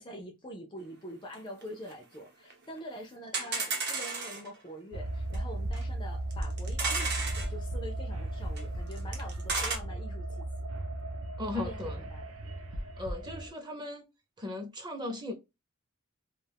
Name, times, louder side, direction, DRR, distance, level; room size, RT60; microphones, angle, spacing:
voice 1, 0.0-10.5 11.5-11.8 12.1-12.2, equal, 20° left, 0.4 m, -45 dB
sound 1, 1.3-1.4 1.6-1.7 1.9-2.0 2.5-2.6 2.8-2.9 3.3-4.5 5.3-5.4 5.7-5.8 6.3-7.5 8.6-8.7 8.9-9.8, right 4 dB, 50° right, 0.8 m, -32 dB
sound 2, 4.9-13.5, right 1 dB, 75° right, 0.5 m, -36 dB
voice 2, 11.4-12.1 13.0-14.1 14.4-15.3, left 2 dB, 20° right, 0.6 m, -37 dB
2.3 x 2.3 x 3.3 m
head